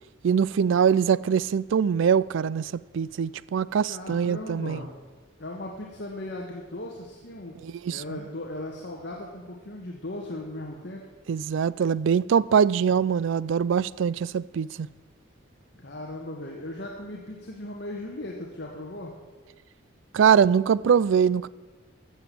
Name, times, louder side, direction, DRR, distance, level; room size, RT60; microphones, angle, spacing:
voice 1, 0.2-4.8 7.6-8.2 11.3-14.9 20.1-21.5, right 7 dB, 70° right, 0.3 m, -23 dB
voice 2, 3.9-4.9 5.4-7.5 7.9-11.1 15.8-19.1, left 1 dB, 55° left, 1.5 m, -37 dB
14.5 x 7.2 x 7.5 m
head